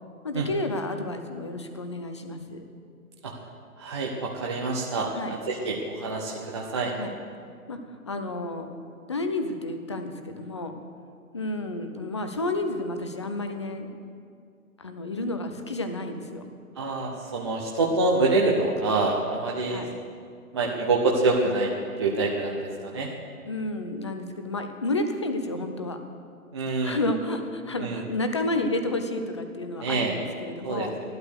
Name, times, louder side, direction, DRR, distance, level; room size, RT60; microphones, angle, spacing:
voice 1, 0.2-2.6 5.1-5.3 7.0-7.1 7.7-7.8 8.1-8.8 9.1-10.7 11.3-13.9 14.8-16.5 19.6-19.9 23.4-26.0 26.8-30.9, left 2 dB, 20° left, 7 dB, 0.5 m, -31 dB
voice 2, 3.8-6.9 16.8-19.9 20.5-23.1 26.5-27.0 27.8-28.0 29.8-30.1 30.6-30.9, right 3 dB, 20° right, -3 dB, 0.7 m, -26 dB
14.0 x 12.0 x 6.4 m, 2.3 s
hypercardioid pair, 160°, 44 cm